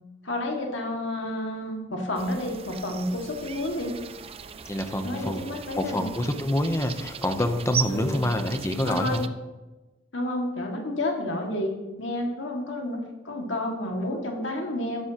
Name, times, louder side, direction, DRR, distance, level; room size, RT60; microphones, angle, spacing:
voice 1, 0.2-4.0 5.0-6.1 7.9-8.2 8.9-9.2 10.1-15.0, left 1 dB, 90° left, 1 dB, 2.0 m, -30 dB
sound 1, 2.2-9.3, right 7 dB, 30° right, 0.4 m, -38 dB
voice 2, 4.7-5.5 5.8-9.3, left 1 dB, 15° left, 7 dB, 0.7 m, -26 dB
13.0 x 10.5 x 2.9 m, 1.1 s
head